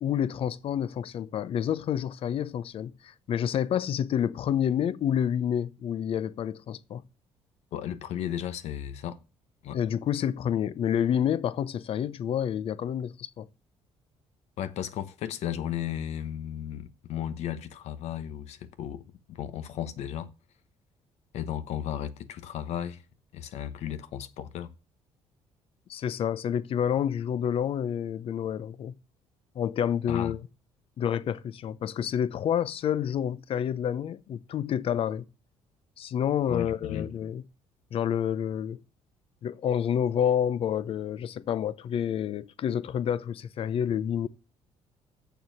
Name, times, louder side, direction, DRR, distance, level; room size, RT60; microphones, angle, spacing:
voice 1, 0.0-7.0 9.7-13.5 25.9-28.9 29.5-30.4 31.0-35.2 36.0-37.4 37.9-38.8 39.4-44.3, left 9 dB, 55° left, 0.7 m, -28 dB
voice 2, 7.7-9.2 9.6-9.8 14.6-20.3 21.3-23.0 23.3-24.7 30.1-30.3 36.5-37.1, left 10 dB, 75° left, 1.0 m, -34 dB
7.2 x 6.9 x 7.8 m
cardioid pair, 100°, 11 cm